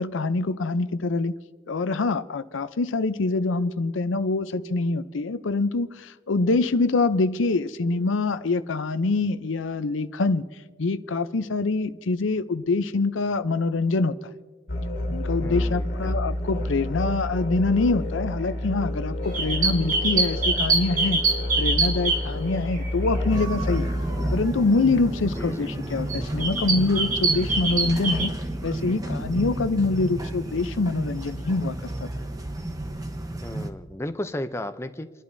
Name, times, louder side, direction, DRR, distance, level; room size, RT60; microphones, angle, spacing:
voice 1, 0.0-1.3 1.7-10.5 10.8-14.3 15.1-21.2 21.6-23.9 24.3-28.3 28.6-32.1, left 3 dB, 90° left, 0.6 m, -25 dB
sound 1, 14.7-24.3, left 1 dB, 65° left, 1.7 m, -29 dB
voice 2, 15.4-16.3 25.4-25.7 33.4-35.1, left 1 dB, 15° left, 0.5 m, -34 dB
sound 2, 19.2-23.3 23.8-24.0 24.9-25.0 25.6-25.8 26.1-28.3, right 3 dB, 45° right, 1.5 m, -25 dB
sound 3, 23.3-33.7, right 1 dB, 20° right, 0.9 m, -32 dB
30.0 x 11.5 x 2.7 m
head